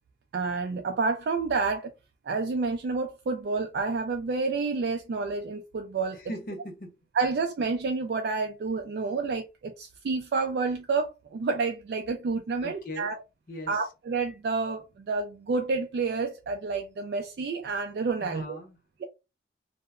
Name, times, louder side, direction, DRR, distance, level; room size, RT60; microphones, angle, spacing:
voice 1, 0.3-1.9 2.3-6.2 7.2-13.2 13.7-18.6, right 4 dB, 65° right, 0.3 m, -29 dB
voice 2, 6.1-7.0 12.6-13.1 13.5-13.8 18.2-18.8, left 1 dB, 50° left, 0.7 m, -39 dB
2.0 x 2.0 x 3.5 m
head